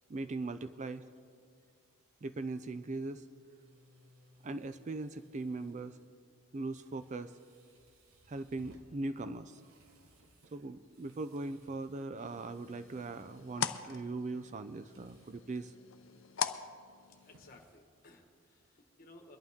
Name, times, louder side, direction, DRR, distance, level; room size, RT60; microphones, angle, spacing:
voice 1, 0.1-1.1 2.2-3.2 4.4-6.0 6.5-7.3 8.3-9.6 10.5-15.7, right 3 dB, 35° right, 11 dB, 0.3 m, -40 dB
sound 1, 2.7-18.5, right 1 dB, 75° right, 1.2 m, -66 dB
sound 2, 12.2-17.6, left 8 dB, 60° left, 0.6 m, -42 dB
voice 2, 17.2-19.4, left 2 dB, 40° left, 3 dB, 1.4 m, -58 dB
22.5 x 11.5 x 3.6 m, 2.1 s
head